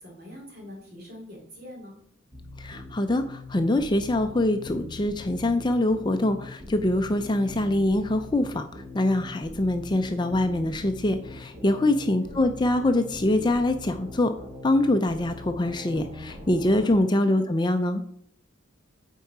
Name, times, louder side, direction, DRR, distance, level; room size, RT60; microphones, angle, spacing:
voice 1, 0.0-2.0 12.2-12.6 17.2-17.6, left 1 dB, 50° right, -1 dB, 2.8 m, -44 dB
sound 1, 2.3-17.0, left 2 dB, 30° right, 1.6 m, -42 dB
voice 2, 2.6-14.3 14.6-18.0, left 1 dB, 20° left, 7 dB, 0.5 m, -24 dB
8.3 x 4.6 x 4.9 m, 0.64 s
head